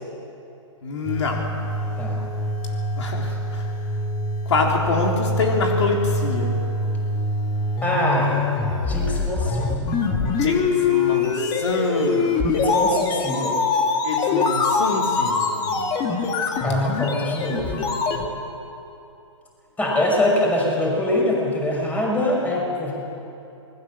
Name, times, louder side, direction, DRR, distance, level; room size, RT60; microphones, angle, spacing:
voice 1, 0.8-1.5 3.0-3.7 4.5-6.6 10.3-12.6 14.0-15.9, left 3 dB, 60° left, 0 dB, 3.6 m, -26 dB
sound 1, 1.0-18.3, left 3 dB, 25° left, 2.2 m, -24 dB
voice 2, 7.8-9.9 12.5-13.6 16.6-17.9 19.8-22.9, left 1 dB, 10° left, -2 dB, 5.9 m, -23 dB
27.5 x 20.5 x 7.3 m, 2.9 s
hypercardioid pair, 135°, 16 cm